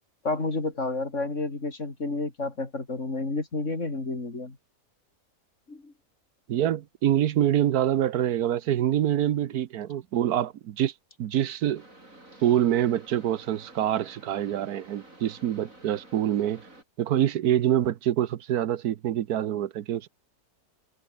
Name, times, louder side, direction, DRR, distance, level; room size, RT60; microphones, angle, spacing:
voice 1, 0.2-4.6 5.7-5.9, left 3 dB, 50° left, 4.1 m, -30 dB
voice 2, 6.5-10.9 11.2-11.8 12.4-16.6 17.0-20.1, right 11 dB, 80° right, 1.4 m, -25 dB
sound 1, 11.7-16.8, right 1 dB, 55° right, 8.2 m, -51 dB
omnidirectional pair, 1.6 m